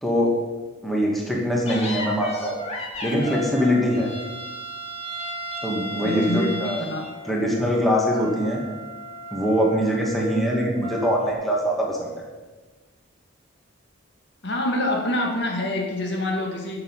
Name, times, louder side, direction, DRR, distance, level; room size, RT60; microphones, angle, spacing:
voice 1, 0.0-0.4 0.8-2.6 3.0-4.1 5.6-6.8 7.3-8.6 9.3-12.3, equal, ahead, -2 dB, 2.5 m, -23 dB
sound 1, 1.7-11.3, equal, 30° left, 2.6 m, -35 dB
voice 2, 6.0-7.0 14.4-16.8, left 1 dB, 55° left, 1 dB, 2.3 m, -26 dB
15.5 x 7.2 x 7.6 m, 1.3 s
head